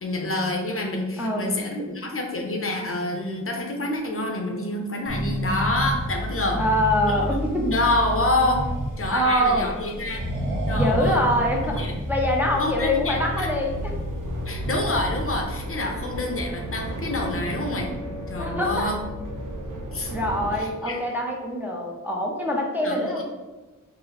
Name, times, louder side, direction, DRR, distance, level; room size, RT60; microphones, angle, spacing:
voice 1, 0.0-6.6 7.1-7.2 7.7-8.6 9.0-10.2 10.7-11.2 11.6-11.9 12.6-13.5 14.5-17.9 18.3-19.0 19.9-20.1 20.6-21.0 22.8-23.2, left 2 dB, 45° left, 2 dB, 0.6 m, -27 dB
voice 2, 1.2-1.6 6.6-7.8 9.1-9.7 10.8-11.8 12.1-13.9 18.4-18.9 20.1-23.2, equal, 5° right, -2 dB, 0.5 m, -24 dB
Accelerating revving vroom, 5.1-15.4, equal, 40° right, 1.0 m, -30 dB
sound 1, 13.6-20.6, equal, 75° right, 0.6 m, -34 dB
4.0 x 2.0 x 4.0 m, 1.2 s
wide cardioid pair, 115°, 31 cm